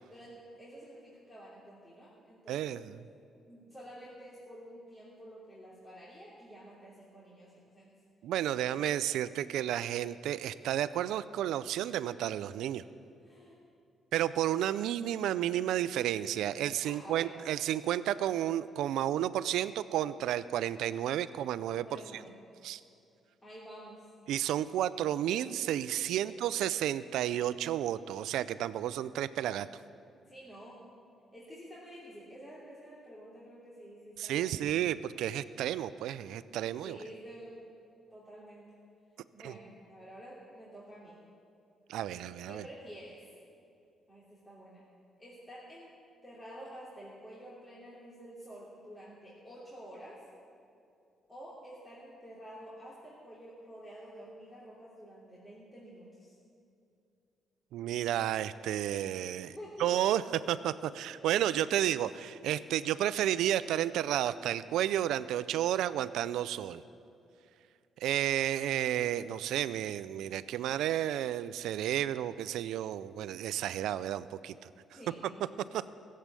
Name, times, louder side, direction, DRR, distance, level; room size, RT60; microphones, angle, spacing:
voice 1, 0.1-2.8 3.5-8.0 8.7-8.9 13.2-13.6 16.8-17.4 21.7-22.3 23.4-24.1 26.1-26.4 30.3-30.8 31.3-34.8 36.8-37.7 38.1-38.7 39.3-41.2 42.5-43.2 44.1-44.9 45.2-45.9 46.2-50.2 51.3-56.3 59.4-59.9 74.7-75.5, equal, 20° left, -7 dB, 3.0 m, -50 dB
voice 2, 2.5-3.0 8.2-12.8 14.1-22.0 22.6-22.8 24.3-29.7 34.2-37.0 39.4-39.5 41.9-42.6 57.7-66.8 68.0-74.5 75.7-75.8, right 11 dB, 85° right, 15 dB, 0.4 m, -32 dB
16.0 x 7.6 x 8.3 m, 2.6 s
cardioid pair, 90°, 0 cm